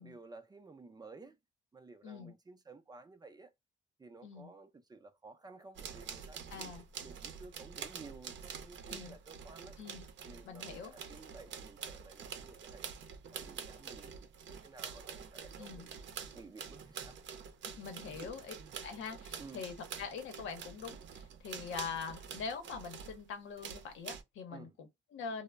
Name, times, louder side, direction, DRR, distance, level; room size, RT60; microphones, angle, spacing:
voice 1, 0.0-1.4 1.7-3.5 4.0-6.7 7.0-9.7 10.2-12.9 13.3-16.0 16.3-17.2 18.0-18.7 19.4-19.7 24.5-24.8, right 3 dB, 20° right, 0.4 m, -54 dB
sound 1, 5.7-23.2 23.6-24.2, right 7 dB, 70° right, 0.6 m, -47 dB
voice 2, 6.5-6.8 8.9-9.2 9.8-10.1 10.4-10.9 15.6-15.9 17.8-18.5 18.8-25.4, left 6 dB, 85° left, 0.7 m, -43 dB
2.1 x 2.0 x 3.4 m
cardioid pair, 90°, 20 cm